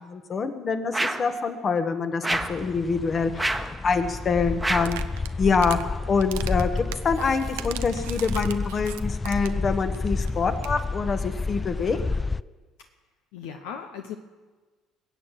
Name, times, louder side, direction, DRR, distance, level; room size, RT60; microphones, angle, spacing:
voice 1, 0.0-5.0 5.4-6.7 7.0-12.0, left 5 dB, 40° left, 8 dB, 1.5 m, -26 dB
sound 1, 0.9-1.3 2.2-2.6 3.4-3.8 4.6-5.0, right 2 dB, 10° right, 1.2 m, -27 dB
sound 2, 2.3-12.4, left 3 dB, 20° left, 0.4 m, -30 dB
sound 3, 4.8-5.8 6.2-9.7 9.9-10.0 10.3-10.4 10.6-10.8, right 15 dB, 80° right, 0.6 m, -39 dB
voice 2, 13.3-14.2, left 8 dB, 75° left, 6 dB, 0.8 m, -38 dB
21.0 x 8.3 x 7.6 m, 1.3 s
hypercardioid pair, 55°, 0 cm